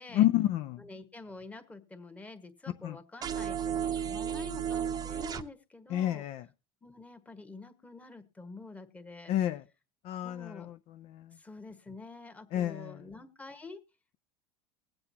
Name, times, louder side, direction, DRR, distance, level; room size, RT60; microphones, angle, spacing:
voice 1, 0.1-0.8 2.8-3.0 5.9-6.4 9.3-9.6 10.0-10.7 11.1-11.2 12.5-13.0, left 13 dB, 55° left, 0.5 m, -29 dB
voice 2, 0.8-6.3 6.8-9.3 10.2-10.7 11.4-13.8, left 3 dB, 10° left, 1.3 m, -47 dB
sound 1, 3.2-5.4, right 8 dB, 30° right, 0.7 m, -33 dB
21.0 x 7.9 x 2.8 m
supercardioid pair, 120°, 13 cm